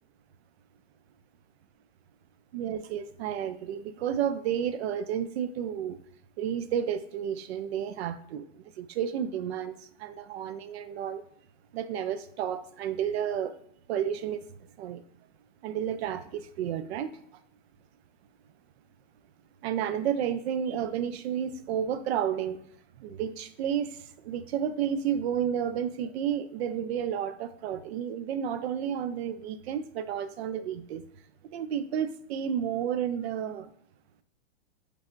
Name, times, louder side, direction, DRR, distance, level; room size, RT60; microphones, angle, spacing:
voice 1, 2.5-6.0 6.4-8.4 8.8-11.2 11.7-13.5 13.9-14.4 14.8-15.0 15.6-17.1 19.6-22.6 23.0-23.9 24.2-31.0 31.5-33.7, right 9 dB, 65° right, 12 dB, 0.4 m, -31 dB
4.3 x 3.3 x 2.5 m, 0.69 s
supercardioid pair, 155°, 35 cm